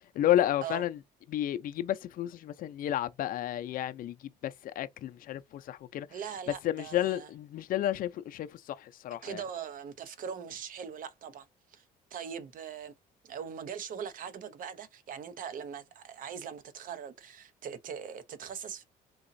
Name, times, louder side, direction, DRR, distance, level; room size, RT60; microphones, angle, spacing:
voice 1, 0.1-1.0 1.3-6.1 6.6-9.4, left 12 dB, 55° left, 0.5 m, -31 dB
voice 2, 6.1-7.3 9.2-11.8 12.1-12.9 13.2-18.8, right 7 dB, 55° right, 0.7 m, -41 dB
4.0 x 2.9 x 2.6 m
cardioid pair, 110°, 17 cm